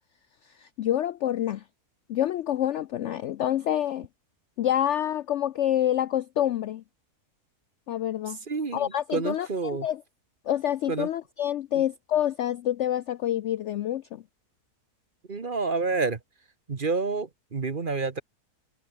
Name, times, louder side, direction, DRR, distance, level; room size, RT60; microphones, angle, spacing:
voice 1, 0.6-1.6 2.1-4.1 4.6-6.8 7.9-8.4 8.7-10.0 10.5-14.2, left 11 dB, 65° left, 0.7 m, -27 dB
voice 2, 8.5-9.9 10.9-11.1 15.3-16.2 16.7-18.2, right 4 dB, 35° right, 1.3 m, -29 dB
omnidirectional pair, 1.7 m